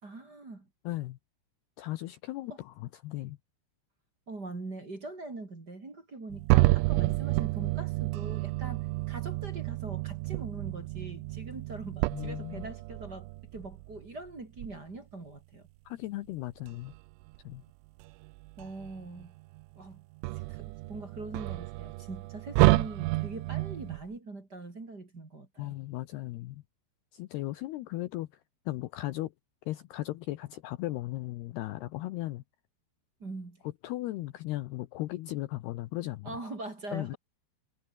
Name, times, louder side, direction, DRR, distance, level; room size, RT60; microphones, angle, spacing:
voice 1, 0.0-0.7 2.5-2.6 4.3-15.7 18.6-19.3 19.7-20.0 20.5-25.7 33.2-33.7 36.2-37.2, right 2 dB, 25° right, 3.3 m, -42 dB
voice 2, 0.9-1.2 1.8-3.4 12.1-12.7 15.9-16.9 17.4-17.6 25.6-26.6 27.1-28.3 28.7-29.3 29.7-32.4 33.8-36.5 36.9-37.2, left 17 dB, 80° left, 2.4 m, -36 dB
sound 1, 6.3-14.1 14.6-14.8 16.7-17.4 18.0-19.7 19.9-24.0, right 23 dB, 85° right, 3.1 m, -29 dB
omnidirectional pair, 5.6 m